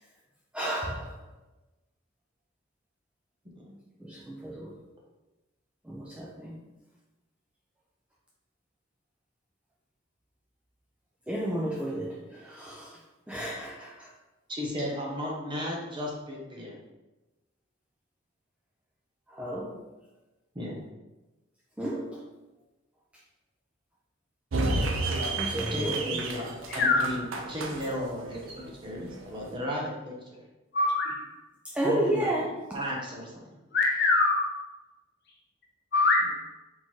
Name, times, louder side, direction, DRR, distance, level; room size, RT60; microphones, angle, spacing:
voice 1, 0.5-1.2 4.0-4.7 5.9-6.6 11.3-13.0 13.3-14.1 19.3-19.8 21.8-22.2 25.4-26.2 31.7-32.5, right 1 dB, 5° right, -4 dB, 0.4 m, -32 dB
voice 2, 14.5-16.8 20.5-20.8 25.7-30.4 31.8-32.3 32.7-33.4, equal, 25° right, -3 dB, 1.0 m, -35 dB
sound 1, 24.5-29.6, right 2 dB, 80° right, 0.6 m, -32 dB
voice 3, 30.7-31.3 33.7-34.5 35.9-36.4, left 3 dB, 55° left, -1 dB, 0.9 m, -23 dB
4.2 x 3.8 x 3.0 m, 1.1 s
head